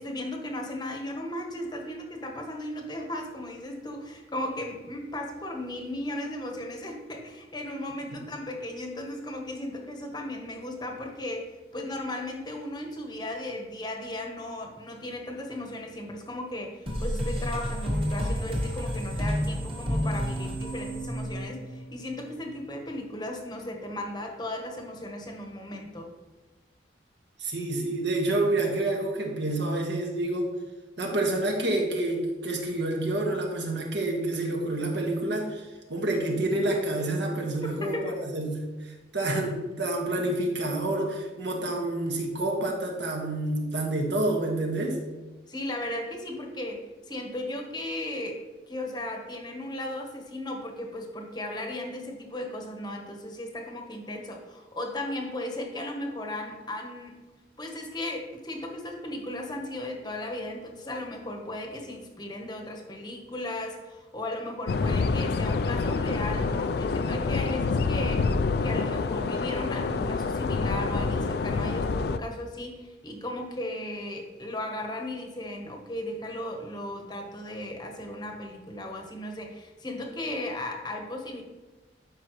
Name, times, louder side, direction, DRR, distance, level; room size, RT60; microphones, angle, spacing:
voice 1, 0.0-26.1 37.6-38.1 45.5-48.4 48.7-57.1 57.6-81.4, left 1 dB, 20° left, 2 dB, 1.0 m, -36 dB
sound 1, 16.9-22.2, equal, 30° right, 1.4 m, -30 dB
voice 2, 27.4-30.5 31.0-38.5 38.8-45.0, right 2 dB, 70° right, 0 dB, 1.5 m, -28 dB
sound 2, 64.7-72.2, left 4 dB, 55° left, 0.3 m, -27 dB
12.0 x 5.3 x 3.0 m, 1.2 s
head